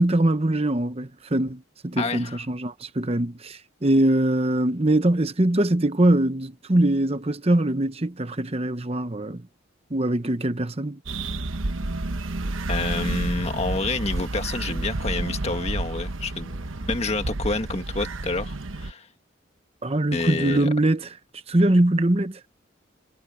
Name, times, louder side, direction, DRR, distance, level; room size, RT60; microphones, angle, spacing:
voice 1, 0.0-9.4 9.9-11.0 19.8-21.1 21.5-22.4, right 1 dB, 30° right, 1.0 m, -22 dB
voice 2, 2.0-2.4 12.7-19.1 20.1-20.7, left 3 dB, 30° left, 1.8 m, -28 dB
sound 1, 11.1-18.9, right 2 dB, 90° right, 1.1 m, -30 dB
head